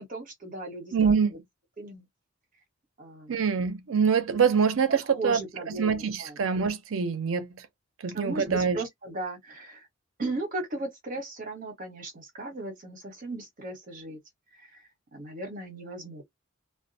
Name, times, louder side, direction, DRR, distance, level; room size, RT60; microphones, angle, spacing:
voice 1, 0.0-1.2 1.8-2.0 3.0-3.4 4.9-6.4 8.1-9.9 10.2-14.2 14.5-14.8 15.1-16.2, right 2 dB, 40° right, 1.0 m, -37 dB
voice 2, 0.9-1.3 3.3-5.4 5.7-7.5 8.0-8.8, right 6 dB, 80° right, 0.5 m, -25 dB
2.2 x 2.1 x 2.6 m
head